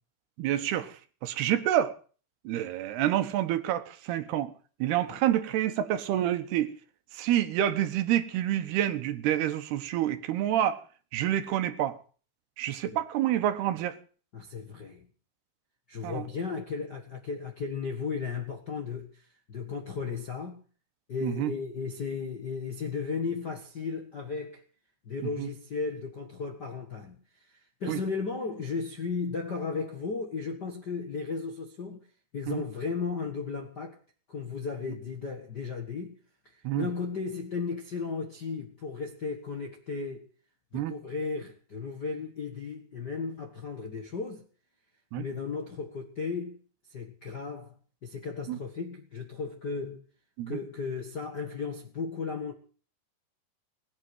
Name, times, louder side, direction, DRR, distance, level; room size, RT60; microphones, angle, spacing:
voice 1, 0.4-1.0 1.2-2.0 2.4-4.5 4.8-6.7 7.1-10.8 11.1-12.0 12.6-14.0 16.0-16.3 21.2-21.5 25.4-25.5 27.9-28.0 32.5-32.6 36.6-36.9 40.7-40.9 45.1-45.3 48.5-48.6 50.4-50.6, right 12 dB, 80° right, 3.2 m, -28 dB
voice 2, 14.3-15.1 15.9-20.6 21.1-24.6 25.0-27.2 27.5-32.1 32.3-34.0 34.3-36.2 36.4-40.3 40.7-44.4 45.2-46.6 46.9-47.7 48.0-50.0 50.5-52.5, left 5 dB, 50° left, 1.2 m, -35 dB
19.5 x 8.9 x 7.8 m
omnidirectional pair, 4.6 m